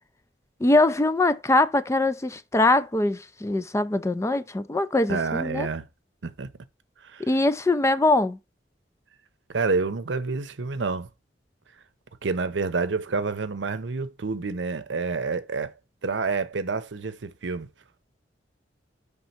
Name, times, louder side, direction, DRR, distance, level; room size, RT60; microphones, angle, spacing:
voice 1, 0.6-5.7 7.2-8.4, left 2 dB, 15° left, 0.4 m, -22 dB
voice 2, 5.1-5.8 6.2-6.5 7.0-7.3 9.5-11.1 12.2-15.7 16.0-17.7, right 4 dB, 80° right, 0.7 m, -28 dB
5.3 x 3.6 x 5.8 m
head